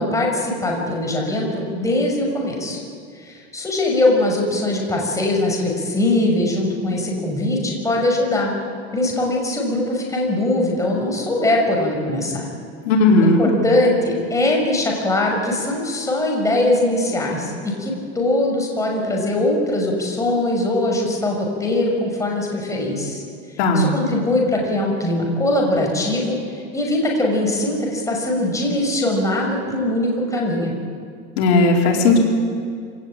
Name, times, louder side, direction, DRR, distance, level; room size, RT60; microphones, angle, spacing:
voice 1, 0.0-2.8 3.2-8.5 8.9-12.5 13.2-23.2 23.7-30.7, left 1 dB, 10° left, -1 dB, 5.9 m, -21 dB
voice 2, 12.9-13.4 23.6-23.9 31.4-32.2, left 2 dB, 75° left, -1 dB, 4.7 m, -15 dB
26.5 x 18.0 x 8.9 m, 2.2 s
supercardioid pair, 140°, 33 cm